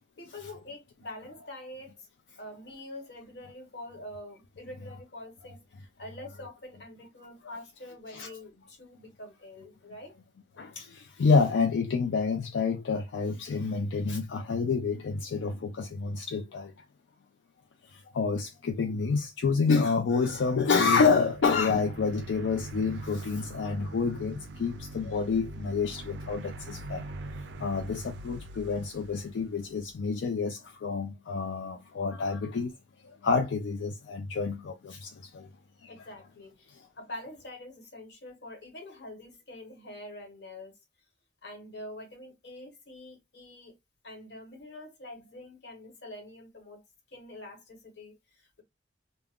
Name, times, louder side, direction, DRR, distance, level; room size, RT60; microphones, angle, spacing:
voice 1, 0.2-2.1 2.3-10.1 35.9-40.8 41.4-43.8 44.0-48.6, left 1 dB, 65° left, 1.1 m, -45 dB
voice 2, 10.6-16.7 17.9-27.1 27.6-32.7 33.0-35.5 35.8-35.9, left 5 dB, 85° left, 0.4 m, -28 dB
sound 1, 19.9-30.1, right 1 dB, 70° right, 0.3 m, -43 dB
2.3 x 2.0 x 3.5 m
head